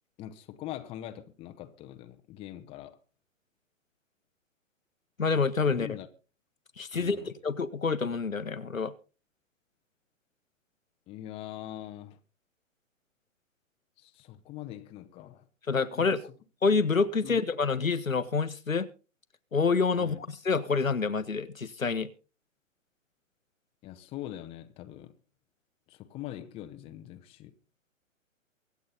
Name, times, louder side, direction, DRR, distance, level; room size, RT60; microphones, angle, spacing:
voice 1, 0.2-3.0 5.7-6.1 6.9-7.3 11.1-12.2 14.0-15.4 15.9-16.2 17.2-17.4 20.0-20.2 23.8-25.1 25.9-27.5, left 13 dB, 15° left, 0.8 m, -43 dB
voice 2, 5.2-5.9 6.8-8.9 15.7-16.2 16.6-18.9 19.5-22.1, left 4 dB, 85° left, 1.3 m, -27 dB
24.0 x 8.5 x 3.9 m
figure-of-eight pair, 120°, 39 cm